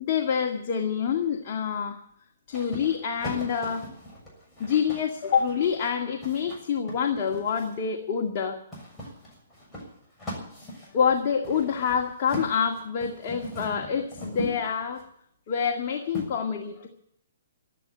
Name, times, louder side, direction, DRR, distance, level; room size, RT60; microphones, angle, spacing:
voice 1, 0.0-2.0 2.5-3.9 4.6-8.6 10.9-15.0 15.5-16.9, left 7 dB, 40° left, 2 dB, 2.0 m, -27 dB
sound 1, 2.5-7.9 8.7-15.1 16.1-16.3, equal, 10° left, 6.9 m, -40 dB
12.5 x 11.5 x 9.9 m, 0.70 s
hypercardioid pair, 140°, 0 cm